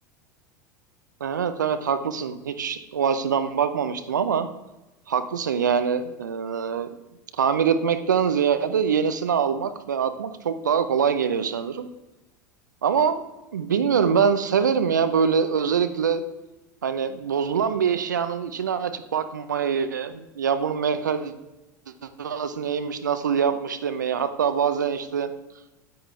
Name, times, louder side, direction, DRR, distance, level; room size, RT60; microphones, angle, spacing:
voice 1, 1.2-4.5 5.1-7.0 7.4-11.9 12.8-13.2 13.5-16.2 16.8-21.3 22.0-25.3, right 7 dB, 80° right, 10 dB, 0.7 m, -24 dB
9.3 x 8.8 x 3.3 m, 1.0 s
figure-of-eight pair, 80°, 10 cm